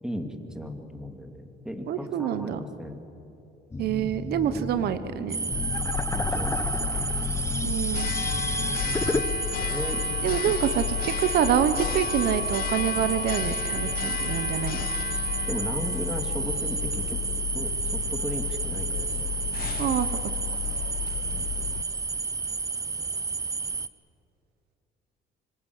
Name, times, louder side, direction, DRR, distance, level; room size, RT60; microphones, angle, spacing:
voice 1, 0.0-3.0 4.5-4.7 6.1-6.6 9.7-10.0 10.4-10.5 15.5-17.2 17.5-19.3 21.3-21.7, equal, 5° right, 5 dB, 2.8 m, -36 dB
voice 2, 1.9-2.6 3.8-5.4 7.6-8.1 10.2-14.9 19.8-20.2, right 10 dB, 70° right, 12 dB, 1.1 m, -26 dB
sound 1, 3.7-9.2, left 3 dB, 15° left, 1.2 m, -32 dB
sound 2, 5.3-23.9, right 4 dB, 20° right, 0.8 m, -31 dB
Church bell, 5.5-21.8, left 13 dB, 60° left, 0.8 m, -32 dB
26.0 x 25.5 x 8.3 m, 2.8 s
cardioid pair, 110°, 17 cm